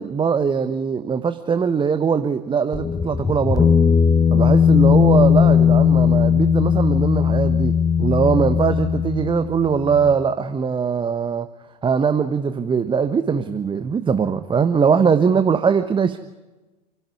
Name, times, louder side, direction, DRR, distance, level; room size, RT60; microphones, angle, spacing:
voice 1, 0.0-3.7 4.3-11.5 11.8-16.2, right 6 dB, 25° right, 10 dB, 1.1 m, -21 dB
sound 1, 2.7-10.1, left 7 dB, 15° left, 1.0 m, -17 dB
28.5 x 12.0 x 9.6 m, 1.2 s
figure-of-eight pair, 75°, 21 cm